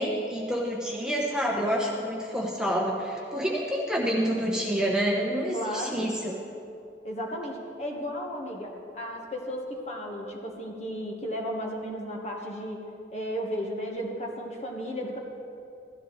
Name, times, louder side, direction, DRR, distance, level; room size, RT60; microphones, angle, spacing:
voice 1, 0.0-6.4, equal, 5° right, -3 dB, 1.0 m, -28 dB
voice 2, 5.5-6.1 7.0-12.8 13.1-15.2, equal, 35° left, 0 dB, 1.4 m, -34 dB
16.0 x 13.0 x 3.3 m, 2.6 s
head